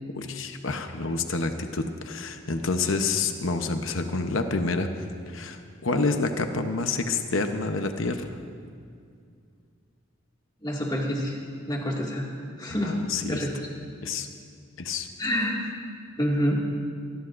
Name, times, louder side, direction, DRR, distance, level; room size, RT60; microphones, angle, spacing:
voice 1, 0.1-4.9 5.3-8.3 12.8-13.4 14.0-14.3 14.8-15.1, left 3 dB, 75° left, 6 dB, 0.9 m, -28 dB
voice 2, 10.6-11.4 11.7-12.3 12.6-12.9 13.3-13.5 15.2-15.6 16.2-16.6, equal, 20° left, -2 dB, 2.1 m, -27 dB
24.5 x 19.0 x 2.6 m, 2.3 s
head